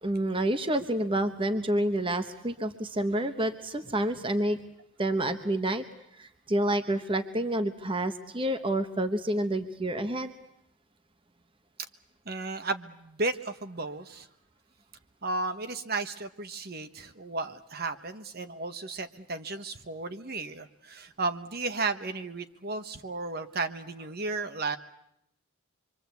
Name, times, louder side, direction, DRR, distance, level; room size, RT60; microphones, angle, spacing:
voice 1, 0.0-4.6 5.0-5.8 6.1-10.3, right 1 dB, 25° right, 8 dB, 1.1 m, -28 dB
voice 2, 12.2-14.3 15.2-24.8, right 3 dB, 45° right, 9 dB, 1.2 m, -34 dB
26.5 x 24.0 x 8.3 m, 0.79 s
head